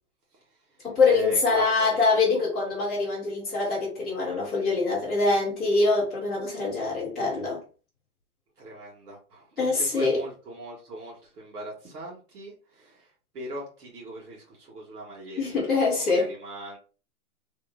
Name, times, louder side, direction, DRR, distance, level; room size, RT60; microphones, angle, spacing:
voice 1, 0.3-2.5 8.6-16.8, right 1 dB, 85° right, 2.0 m, -41 dB
voice 2, 0.8-7.6 9.6-10.2 15.4-16.3, left 3 dB, ahead, 0.7 m, -24 dB
3.5 x 2.5 x 3.3 m
hypercardioid pair, 175°, 45 cm